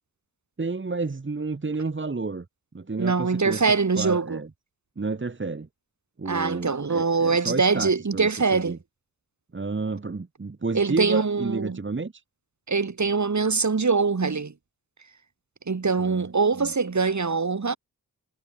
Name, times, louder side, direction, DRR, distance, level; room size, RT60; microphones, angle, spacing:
voice 1, 0.6-2.5 2.7-3.7 4.0-4.5 5.0-5.7 6.2-8.8 9.5-12.2 16.0-16.3 16.5-16.7, right 3 dB, 30° right, 1.8 m, -31 dB
voice 2, 3.0-4.4 6.3-8.8 10.7-11.8 12.7-14.5 15.7-17.8, right 4 dB, 50° right, 3.9 m, -23 dB
cardioid pair, 40°, 37 cm